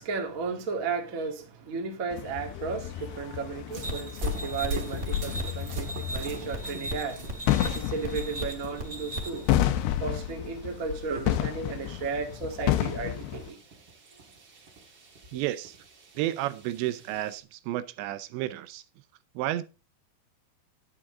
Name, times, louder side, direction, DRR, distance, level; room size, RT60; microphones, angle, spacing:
voice 1, 0.0-13.6, right 5 dB, 60° right, 0.8 m, -34 dB
sound 1, 2.1-13.5, left 13 dB, 75° left, 2.6 m, -31 dB
sound 2, 3.7-17.4, right 3 dB, 40° right, 1.7 m, -44 dB
sound 3, 3.8-9.5, right 1 dB, 20° right, 2.1 m, -37 dB
voice 2, 15.3-15.8 16.2-18.8 19.4-19.6, right 14 dB, 80° right, 2.8 m, -31 dB
11.0 x 9.1 x 3.7 m
omnidirectional pair, 5.4 m